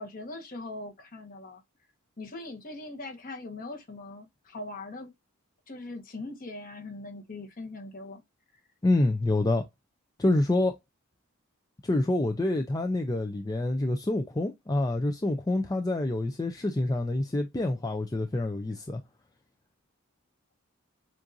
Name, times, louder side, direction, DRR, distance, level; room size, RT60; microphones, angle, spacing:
voice 1, 0.0-1.6 2.2-5.1 5.7-8.2, left 2 dB, 40° left, 1.2 m, -41 dB
voice 2, 8.8-9.6 10.2-10.7 11.8-19.0, left 2 dB, 15° left, 0.4 m, -27 dB
7.3 x 2.5 x 2.6 m
head